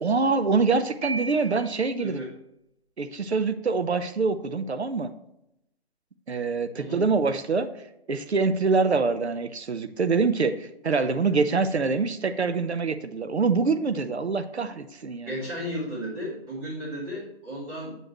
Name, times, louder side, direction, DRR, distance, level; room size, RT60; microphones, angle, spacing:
voice 1, 0.0-2.3 3.0-5.1 6.3-7.7 8.1-15.3, right 4 dB, 85° right, 10 dB, 0.7 m, -25 dB
Piano, 1.0-2.0, right 3 dB, 10° right, 0.4 m, -35 dB
voice 2, 2.0-2.3 6.7-7.0 14.6-14.7 15.2-18.0, equal, 30° right, -9 dB, 2.0 m, -34 dB
6.7 x 6.4 x 3.0 m, 0.82 s
figure-of-eight pair, 135°, 32 cm